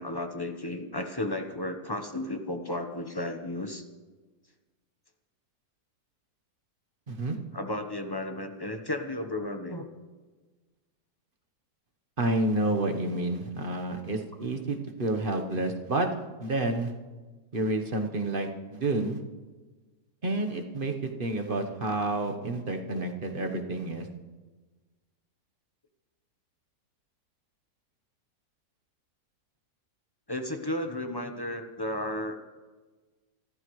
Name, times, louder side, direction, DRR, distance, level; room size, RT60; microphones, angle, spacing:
voice 1, 0.0-3.9 7.5-9.9 22.9-23.1 30.3-32.4, left 1 dB, 15° left, 6 dB, 0.9 m, -33 dB
voice 2, 12.2-16.1 16.4-16.9 17.5-19.2 20.2-24.1, right 2 dB, 35° right, 4 dB, 1.2 m, -29 dB
26.0 x 14.0 x 3.2 m, 1.3 s
omnidirectional pair, 1.7 m